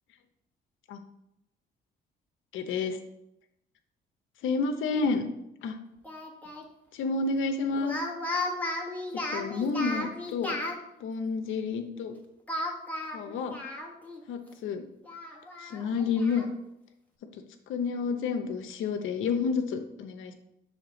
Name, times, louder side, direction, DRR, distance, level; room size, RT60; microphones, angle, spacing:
voice 1, 2.5-3.0 4.4-5.2 5.6-5.8 6.9-8.0 9.3-10.5 11.0-12.1 13.1-13.6 14.3-14.8 15.6-16.5 17.7-20.3, left 4 dB, 80° left, 7 dB, 0.8 m, -30 dB
Speech, 6.0-6.7 7.7-10.8 12.5-14.2 14.5-14.6 15.0-16.5, left 1 dB, 10° left, 1.3 m, -35 dB
6.6 x 3.5 x 5.1 m, 0.83 s
cardioid pair, 90°, 20 cm